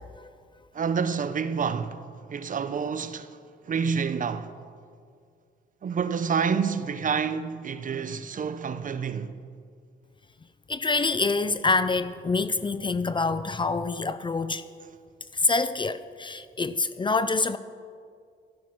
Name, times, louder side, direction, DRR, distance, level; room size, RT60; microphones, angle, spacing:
voice 1, 0.7-2.0 2.3-3.4 3.7-4.5 5.8-9.4, right 6 dB, 40° right, 0.8 m, -28 dB
voice 2, 10.7-14.6 15.3-17.6, left 3 dB, 25° left, 0.5 m, -26 dB
13.0 x 12.0 x 6.0 m
cardioid pair, 90°, 20 cm